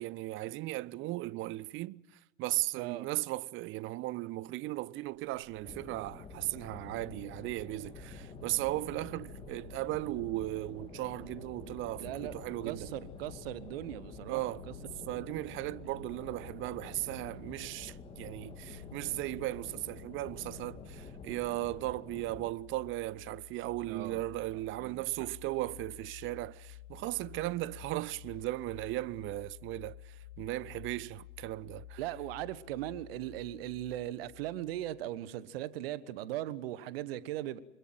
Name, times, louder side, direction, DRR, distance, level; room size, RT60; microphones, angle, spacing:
voice 1, 0.0-12.9 14.3-14.6 15.1-32.0, right 18 dB, 35° right, 0.8 m, -37 dB
sound 1, 5.0-22.4, left 3 dB, 90° left, 2.1 m, -52 dB
sound 2, 5.6-22.5, left 4 dB, 15° left, 2.0 m, -50 dB
voice 2, 12.0-12.4 12.6-14.4 15.1-15.2 23.9-24.2 24.8-25.0 32.0-37.6, right 13 dB, 55° right, 1.4 m, -39 dB
sound 3, 21.0-35.1, left 11 dB, 45° left, 2.2 m, -52 dB
26.5 x 21.5 x 7.9 m
figure-of-eight pair, 85°, 35 cm